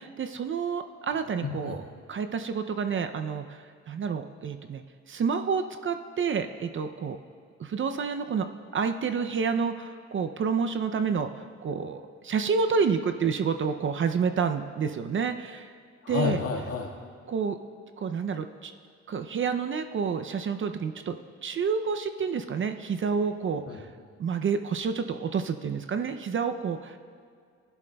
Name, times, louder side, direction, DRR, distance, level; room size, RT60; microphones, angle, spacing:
voice 1, 0.0-1.8 2.1-7.2 7.6-8.5 8.7-15.8 16.1-16.4 17.3-17.6 18.0-18.7 19.1-23.8 24.2-27.0, right 6 dB, 40° right, 8 dB, 0.5 m, -29 dB
voice 2, 1.4-1.8 16.0-16.9 23.7-23.8, left 5 dB, 50° left, 0 dB, 1.7 m, -30 dB
15.5 x 11.0 x 2.3 m, 2.2 s
cardioid pair, 90°, 30 cm